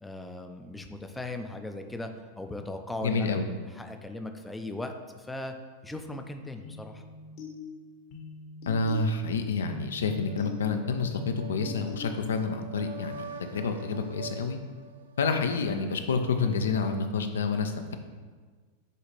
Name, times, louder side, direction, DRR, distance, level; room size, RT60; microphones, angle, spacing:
voice 1, 0.0-2.1 2.4-5.5 5.8-7.0, left 2 dB, 10° left, 5 dB, 0.4 m, -38 dB
voice 2, 3.0-3.5 8.7-14.6 15.2-18.0, left 4 dB, 80° left, 7 dB, 0.4 m, -29 dB
sound 1, 6.6-12.6, left 2 dB, 50° left, 0.9 m, -44 dB
sound 2, 10.0-15.8, right 3 dB, 80° right, 0.4 m, -45 dB
6.5 x 2.4 x 3.2 m, 1.5 s
hypercardioid pair, 100°, 0 cm